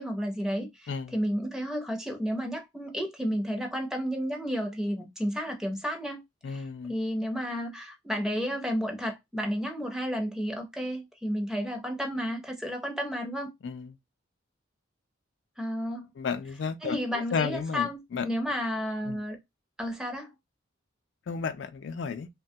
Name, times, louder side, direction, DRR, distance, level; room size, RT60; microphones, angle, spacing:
voice 1, 0.0-13.5 15.6-16.1 16.8-19.4 19.8-20.3, equal, 5° right, 0.6 m, -32 dB
voice 2, 0.9-1.2 6.4-6.9 13.6-13.9 16.2-18.3 19.0-19.2 21.3-22.3, left 5 dB, 65° left, 0.4 m, -33 dB
3.0 x 2.2 x 2.6 m
head